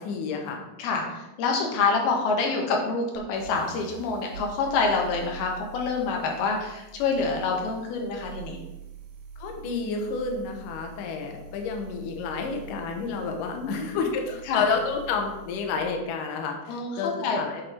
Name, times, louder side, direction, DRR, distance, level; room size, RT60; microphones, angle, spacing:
voice 1, 0.0-0.6 9.4-17.6, left 5 dB, 70° left, 3 dB, 2.4 m, -30 dB
voice 2, 0.8-8.6 13.5-14.1 14.5-14.6 16.7-17.4, left 4 dB, 90° left, 1 dB, 3.2 m, -27 dB
sound 1, 3.1-15.8, right 5 dB, 65° right, 2.4 m, -45 dB
8.0 x 5.3 x 4.3 m, 0.98 s
omnidirectional pair, 4.3 m